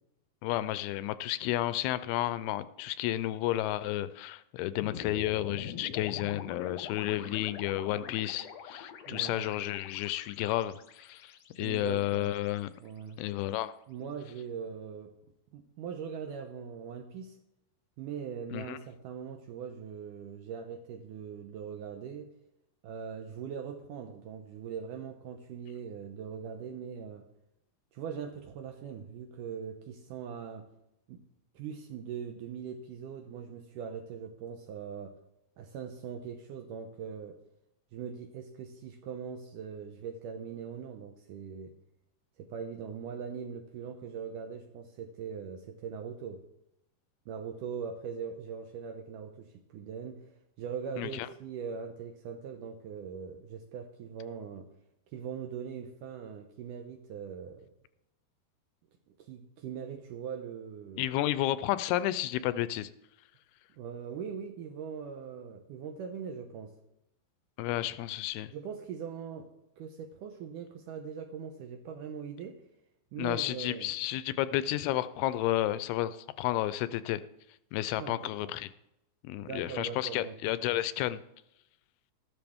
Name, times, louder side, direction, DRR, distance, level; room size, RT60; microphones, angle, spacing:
voice 1, 0.4-12.7 13.2-13.7 18.5-18.8 51.0-51.3 61.0-62.9 67.6-68.5 73.2-77.2 77.7-78.7 79.2-81.2, left 14 dB, 85° left, 15 dB, 2.4 m, -32 dB
sound 1, 4.8-13.1, left 6 dB, 65° left, 1.7 m, -45 dB
voice 2, 9.1-9.5 11.6-12.3 12.8-13.2 13.9-15.1 15.5-17.4 18.0-22.3 22.8-27.3 27.9-30.7 31.1-31.2 31.5-35.2 35.6-37.4 37.9-41.7 42.4-46.4 47.3-54.7 55.1-57.7 59.1-61.1 63.8-66.8 68.5-72.6 73.1-74.0 78.0-78.6 79.4-80.4 80.7-80.8, right 7 dB, 75° right, 5 dB, 2.0 m, -41 dB
13.5 x 13.0 x 3.5 m, 0.84 s
omnidirectional pair, 4.5 m